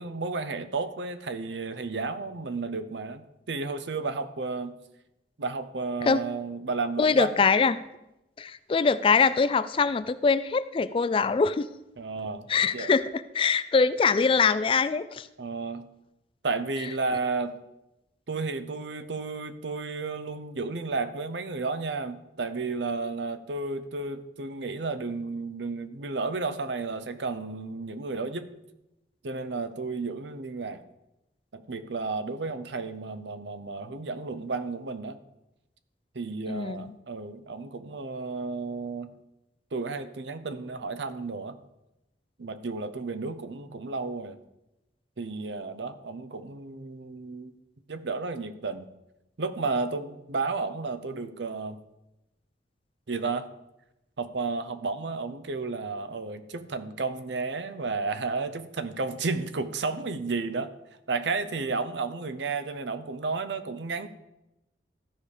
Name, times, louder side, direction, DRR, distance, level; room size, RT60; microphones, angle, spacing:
voice 1, 0.0-4.7 5.4-7.3 12.0-12.9 15.4-15.9 16.4-17.6 18.3-28.5 29.2-30.8 31.5-35.2 36.1-39.2 39.7-41.6 42.4-44.4 45.2-47.5 47.9-48.9 49.4-51.8 53.1-53.5 54.2-60.7 61.1-64.1, right 3 dB, 80° right, 12 dB, 0.7 m, -32 dB
voice 2, 7.0-7.8 8.4-11.7 12.5-15.3 36.5-36.9, left 5 dB, 30° left, 14 dB, 0.3 m, -23 dB
13.5 x 5.2 x 5.0 m, 0.91 s
head